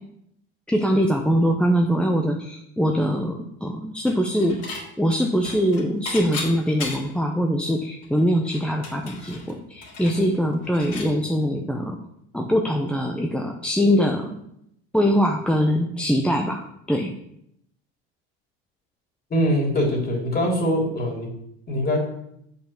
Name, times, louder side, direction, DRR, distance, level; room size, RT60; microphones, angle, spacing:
voice 1, 0.7-4.6 5.0-12.0 12.3-14.4 14.9-17.1, equal, 5° left, 1 dB, 0.9 m, -22 dB
Dishes pots and pans / Chink clink, 4.1-4.8 5.1-7.2 7.7-7.8 8.0-11.1, left 3 dB, 55° left, 3.2 m, -36 dB
voice 2, 19.3-21.3 21.7-22.0, equal, 30° left, 0 dB, 3.3 m, -23 dB
6.7 x 5.5 x 6.0 m, 0.75 s
hypercardioid pair, 80°, 30 cm